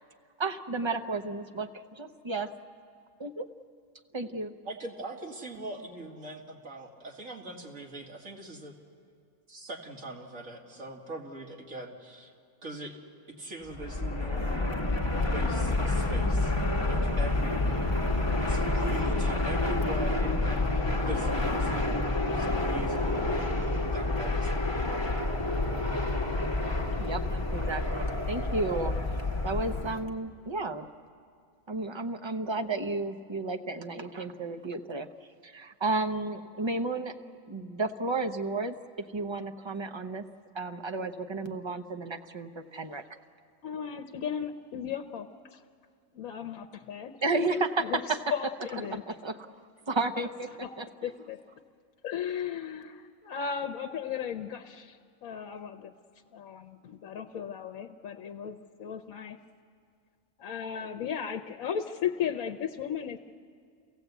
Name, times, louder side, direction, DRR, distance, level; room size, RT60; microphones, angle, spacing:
voice 1, 0.4-2.5 3.2-3.5 4.1-4.5 27.0-29.0 29.4-30.9 31.7-35.1 35.4-37.1 37.5-38.8 39.1-40.2 40.5-43.0 47.2-48.2 48.9-49.5 49.9-50.5 50.8-50.9, right 3 dB, 25° right, 6 dB, 0.7 m, -32 dB
voice 2, 4.6-8.7 9.5-12.3 12.6-13.0 13.4-14.7 15.1-16.6 16.8-18.0 18.4-21.8 22.3-23.5 23.8-24.7, right 2 dB, 65° right, 0 dB, 2.6 m, -42 dB
Fixed-wing aircraft airplane, 13.7-30.1, left 2 dB, 20° left, 1.4 m, -28 dB
voice 3, 43.6-45.6 46.1-47.1 47.8-49.0 50.6-50.7 51.0-51.4 52.0-55.9 56.3-59.4 60.4-63.2, left 8 dB, 80° left, 5 dB, 1.2 m, -36 dB
28.0 x 16.5 x 8.1 m, 2.2 s
omnidirectional pair, 1.5 m